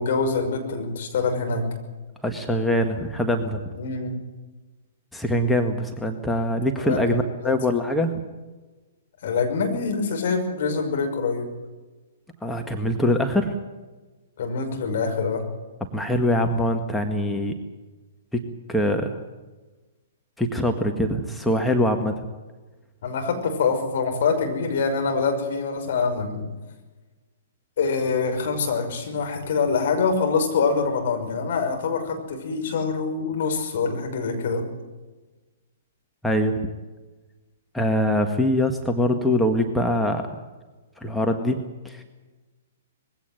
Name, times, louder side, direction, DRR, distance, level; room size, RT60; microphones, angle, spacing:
voice 1, 0.0-1.7 3.7-4.2 6.8-7.0 7.4-7.5 9.2-11.5 14.4-15.4 23.0-26.5 27.8-34.6, left 4 dB, 55° left, 4 dB, 5.9 m, -25 dB
voice 2, 2.2-3.6 5.1-8.2 12.4-13.6 15.9-17.5 18.3-18.4 18.7-19.2 20.4-22.1 36.2-36.6 37.7-40.3 41.0-42.0, left 1 dB, 5° left, 4 dB, 1.8 m, -23 dB
21.5 x 16.5 x 9.5 m, 1.2 s
figure-of-eight pair, 120°, 0 cm